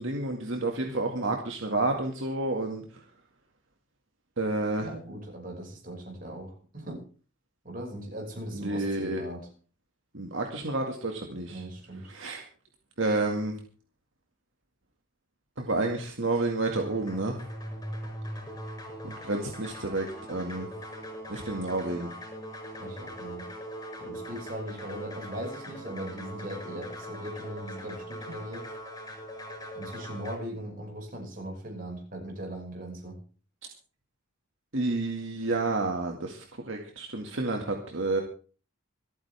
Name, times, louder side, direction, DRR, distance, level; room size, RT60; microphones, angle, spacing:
voice 1, 0.0-2.8 4.4-4.9 8.5-9.2 10.1-11.6 12.1-12.4 13.0-13.5 15.6-17.4 19.0-20.7 21.3-22.1 34.7-38.2, right 2 dB, 65° right, 2 dB, 2.0 m, -30 dB
voice 2, 4.8-7.0 7.6-9.5 11.5-12.1 22.8-23.5 24.0-28.7 29.8-33.2, right 1 dB, 40° right, 1 dB, 5.7 m, -39 dB
sound 1, 16.6-30.4, equal, 15° left, 4.8 m, -41 dB
26.5 x 9.2 x 3.5 m, 0.39 s
head